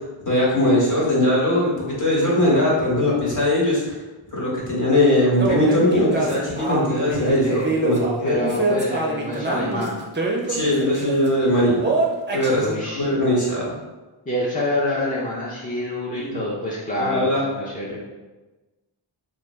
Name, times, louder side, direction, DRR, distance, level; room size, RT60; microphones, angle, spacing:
voice 1, 0.2-4.0 4.3-8.4 10.5-11.8 12.3-12.7 12.9-13.7 16.1-16.3 17.0-17.4, left 1 dB, 35° left, -6 dB, 1.4 m, -20 dB
sound 1, 5.4-11.3 11.8-12.5, right 3 dB, 20° right, 0.6 m, -25 dB
voice 2, 8.2-10.0 12.5-13.1 14.3-18.0, left 1 dB, 15° left, -7 dB, 0.7 m, -26 dB
3.2 x 2.4 x 3.1 m, 1.2 s
cardioid pair, 50°, 49 cm